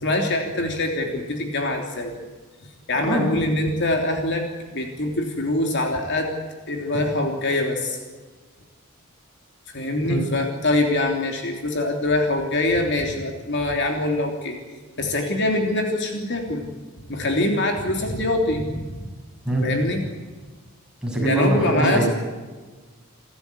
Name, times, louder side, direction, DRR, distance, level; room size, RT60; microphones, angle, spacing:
voice 1, 0.0-2.1 2.9-4.4 4.7-6.4 6.7-8.0 9.7-14.6 15.0-16.6 17.1-18.6 19.0-19.1 19.6-20.0 21.2-22.1, left 2 dB, 55° left, 3 dB, 3.2 m, -24 dB
voice 2, 21.0-22.1, right 1 dB, 5° right, -2 dB, 7.9 m, -23 dB
28.5 x 13.5 x 9.7 m, 1.3 s
head